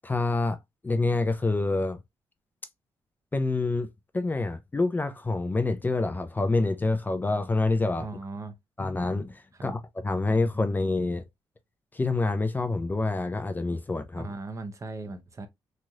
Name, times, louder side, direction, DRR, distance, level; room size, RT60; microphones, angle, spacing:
voice 1, 0.0-0.6 0.8-2.0 3.3-8.1 8.8-11.3 11.9-14.3, left 3 dB, 20° left, 0.4 m, -27 dB
voice 2, 8.0-8.5 9.5-9.8 14.2-15.5, right 3 dB, 35° right, 0.7 m, -38 dB
3.1 x 2.7 x 2.3 m
cardioid pair, 85°, 9 cm